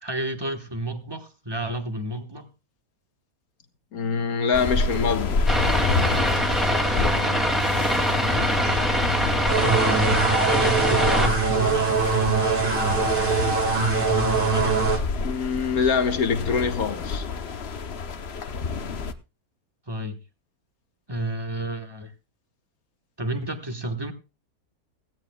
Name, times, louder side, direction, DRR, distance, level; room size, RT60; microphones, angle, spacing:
voice 1, 0.0-2.5 8.1-8.9 9.6-13.3 13.8-14.8 19.9-20.2 21.1-22.1 23.2-24.1, right 1 dB, 15° right, 1.2 m, -31 dB
voice 2, 3.9-5.4 15.2-17.3, left 5 dB, 65° left, 1.8 m, -24 dB
sound 1, 4.5-19.1, left 4 dB, 45° left, 1.0 m, -29 dB
sound 2, 5.5-11.3, equal, ahead, 2.2 m, -23 dB
sound 3, 9.5-15.0, right 5 dB, 35° right, 2.1 m, -23 dB
17.0 x 16.0 x 2.3 m
omnidirectional pair, 1.7 m